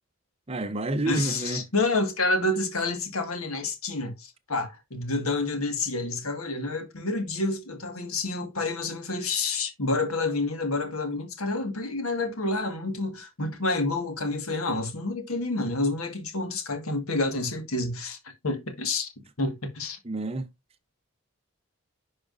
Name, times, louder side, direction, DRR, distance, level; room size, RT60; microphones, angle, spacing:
voice 1, 0.5-1.6 20.0-20.5, right 2 dB, 25° right, 0.7 m, -29 dB
voice 2, 1.1-18.2 18.4-19.1 19.4-20.0, left 2 dB, 80° left, 1.6 m, -29 dB
10.5 x 4.8 x 2.5 m
head